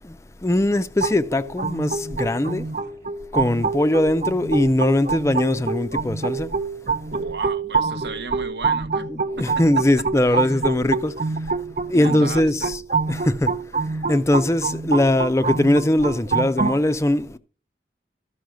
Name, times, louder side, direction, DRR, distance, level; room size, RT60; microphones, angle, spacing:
voice 1, 0.4-2.7 3.3-6.5 9.1-11.5 11.9-12.8 13.1-17.4, left 1 dB, 15° left, 0.4 m, -21 dB
sound 1, 1.0-16.8, right 4 dB, 45° right, 0.6 m, -26 dB
voice 2, 7.1-9.1 10.5-10.6 11.9-12.7, right 3 dB, 80° right, 1.0 m, -34 dB
13.0 x 5.6 x 6.2 m
head